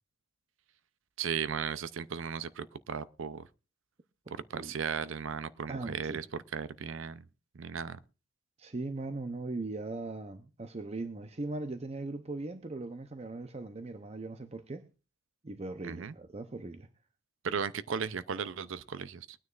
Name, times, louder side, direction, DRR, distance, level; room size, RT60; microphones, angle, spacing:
voice 1, 1.2-3.5 4.5-7.2 7.5-8.0 15.8-16.1 17.4-19.4, right 6 dB, 70° right, 0.5 m, -36 dB
voice 2, 4.3-4.7 5.7-6.2 8.6-14.9 15.4-16.9, right 2 dB, 30° right, 0.7 m, -39 dB
22.5 x 9.5 x 2.4 m
head